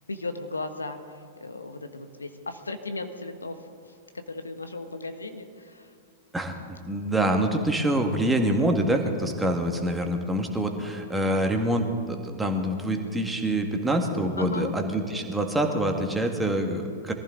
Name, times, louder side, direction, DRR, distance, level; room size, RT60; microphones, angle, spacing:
voice 1, 0.0-4.0 4.3-5.9 14.4-14.7, left 2 dB, 80° left, 8 dB, 1.2 m, -36 dB
voice 2, 6.3-17.1, right 1 dB, 5° right, 3 dB, 1.7 m, -26 dB
22.5 x 14.5 x 3.8 m, 2.3 s
figure-of-eight pair, 100°, 0 cm